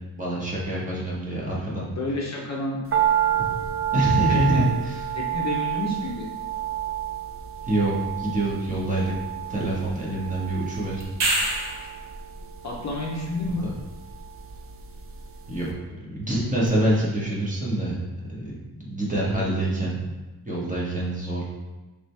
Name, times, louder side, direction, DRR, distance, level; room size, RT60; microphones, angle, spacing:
voice 1, 0.2-1.9 3.4-3.5 3.9-5.0 7.7-9.1 9.5-11.1 15.5-15.7 16.1-18.0 18.3-20.1 20.4-21.4, right 1 dB, 20° right, -6 dB, 1.1 m, -26 dB
voice 2, 1.8-2.8 4.3-4.6 5.1-6.3 12.6-13.7, left 2 dB, 40° left, -2 dB, 0.7 m, -30 dB
sound 1, 2.9-15.2 15.5-15.6, right 11 dB, 35° right, 0.4 m, -29 dB
sound 2, 11.0-12.0 16.7-16.8, right 1 dB, 80° right, 1.0 m, -25 dB
4.9 x 3.3 x 3.2 m, 1.1 s
wide cardioid pair, 150°, 41 cm